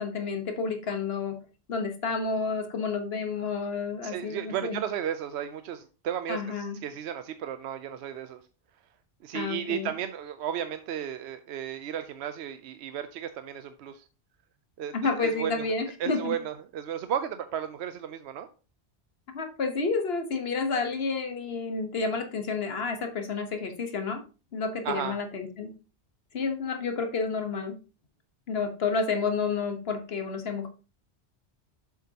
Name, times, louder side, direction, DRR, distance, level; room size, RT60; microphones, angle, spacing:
voice 1, 0.0-1.3 1.7-4.8 6.3-6.8 9.3-9.9 14.9-16.4 19.3-24.2 24.5-25.7 26.3-27.7 28.5-30.7, left 4 dB, 65° left, 7 dB, 1.3 m, -30 dB
voice 2, 4.0-8.4 9.2-14.1 14.8-15.7 16.0-18.5 24.8-25.2, right 9 dB, 80° right, 10 dB, 0.8 m, -34 dB
7.3 x 7.3 x 2.8 m, 0.33 s
omnidirectional pair, 1.1 m